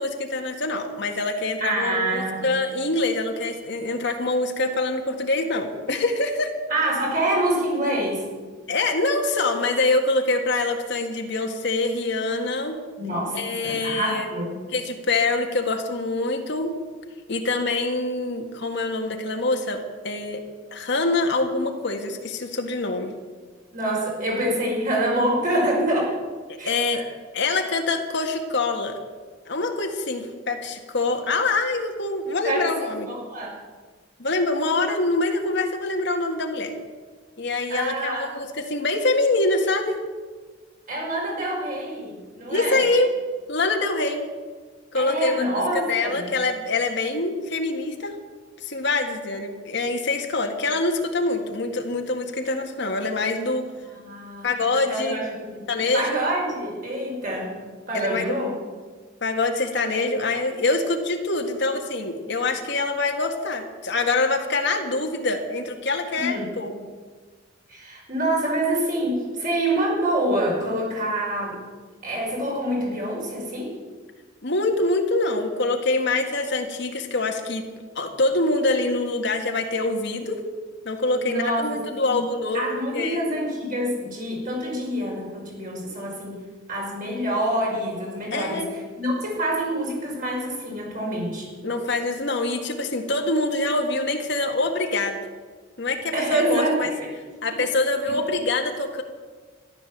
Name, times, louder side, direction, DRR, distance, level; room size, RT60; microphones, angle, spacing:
voice 1, 0.0-6.5 8.7-12.8 13.3-14.3 14.7-16.7 17.3-20.4 20.7-23.1 26.5-27.0 27.3-29.0 29.5-33.1 34.2-36.7 37.4-40.0 42.5-43.1 43.5-44.2 44.9-48.1 48.6-53.7 54.4-55.2 55.7-56.2 57.9-58.2 59.2-66.8 74.4-77.7 78.0-80.4 80.9-82.7 82.9-83.2 88.3-88.7 91.6-95.2 95.8-96.9 97.4-99.0, left 2 dB, 65° left, 3 dB, 1.8 m, -25 dB
voice 2, 1.6-2.5 6.7-8.3 13.0-14.6 23.7-26.1 26.6-27.0 32.4-32.7 33.1-33.6 37.7-38.3 40.9-42.8 44.9-46.3 53.9-54.5 54.9-55.6 55.9-57.6 57.9-58.5 66.2-66.6 67.7-71.6 72.0-73.7 81.2-81.8 82.1-82.2 82.5-86.4 86.7-88.7 89.0-91.5 96.1-97.1 97.5-97.6, right 1 dB, 45° right, -3 dB, 5.5 m, -26 dB
14.0 x 12.0 x 7.4 m, 1.5 s
head